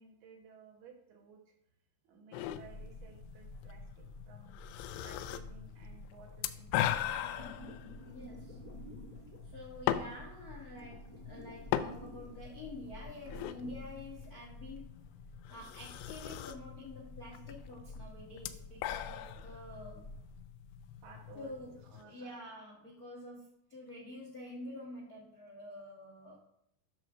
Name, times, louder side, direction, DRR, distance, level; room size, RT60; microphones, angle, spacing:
voice 1, 0.0-1.5 2.0-4.6 5.0-7.6 19.4-19.5 21.0-21.5 21.8-22.4, right 5 dB, 70° right, 1 dB, 3.3 m, -57 dB
sound 1, 2.3-22.0, left 12 dB, 85° left, 2.7 m, -41 dB
sound 2, 2.4-20.4, left 1 dB, 35° left, 2.8 m, -52 dB
sound 3, 7.3-9.6 10.4-13.9 14.3-14.4 15.5-15.7, equal, 10° right, 2.0 m, -52 dB
voice 2, 7.9-8.6 9.4-15.0 15.5-20.1 21.3-26.4, left 1 dB, 55° left, -3 dB, 1.0 m, -48 dB
10.5 x 3.8 x 6.3 m, 0.76 s
omnidirectional pair, 5.0 m